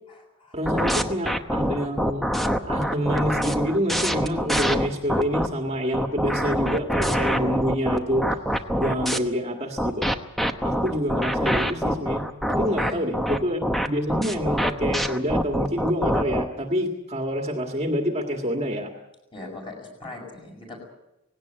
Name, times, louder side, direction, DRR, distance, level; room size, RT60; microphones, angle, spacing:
voice 1, 0.5-2.2 2.7-8.2 8.8-10.1 10.6-12.2 12.5-18.9, equal, 30° right, 2 dB, 1.8 m, -27 dB
sound 1, 0.6-5.5 5.9-9.2 9.8-16.5, equal, ahead, 0.9 m, -25 dB
voice 2, 19.3-20.8, left 2 dB, 25° left, 1 dB, 6.3 m, -39 dB
19.0 x 17.0 x 9.0 m, 0.94 s
head